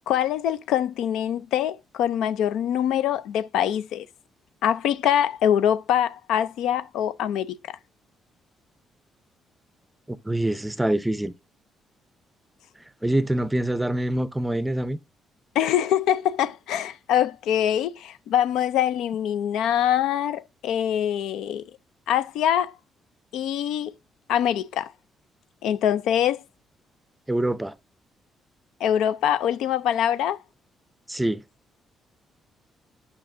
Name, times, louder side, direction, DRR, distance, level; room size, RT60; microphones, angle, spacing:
voice 1, 0.1-4.1 4.6-7.8 15.6-21.6 22.1-22.7 23.3-23.9 24.3-24.9 25.6-26.4 28.8-30.4, left 10 dB, 85° left, 0.4 m, -24 dB
voice 2, 10.1-11.3 13.0-15.0 27.3-27.7 31.1-31.4, right 1 dB, 10° right, 0.5 m, -25 dB
8.7 x 5.7 x 2.5 m
cardioid pair, 90°, 0 cm